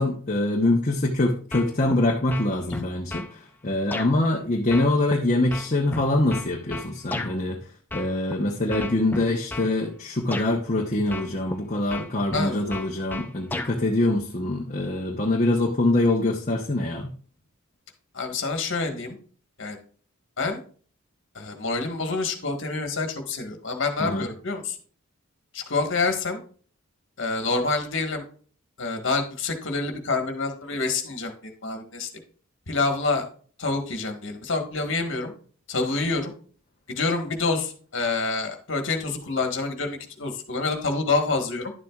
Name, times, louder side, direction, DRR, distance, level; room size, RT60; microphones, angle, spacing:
voice 1, 0.0-3.2 3.6-7.6 7.9-17.1 24.0-24.3, left 2 dB, 35° left, 0 dB, 1.0 m, -24 dB
sound 1, 1.5-2.0 2.3-3.3 3.9-4.1 4.7-7.3 7.9-8.3 8.7-9.7 10.3-10.5 11.1-11.6 11.9-13.7, left 2 dB, 10° left, 0.5 m, -33 dB
voice 2, 12.3-12.6 18.1-19.2 19.6-19.8 20.4-20.6 21.3-24.8 25.5-26.4 27.2-28.2 28.8-32.1 32.7-33.3 33.6-35.3 35.7-36.3 36.9-41.7, left 3 dB, 60° left, 4 dB, 1.6 m, -27 dB
11.0 x 7.5 x 2.4 m, 0.43 s
head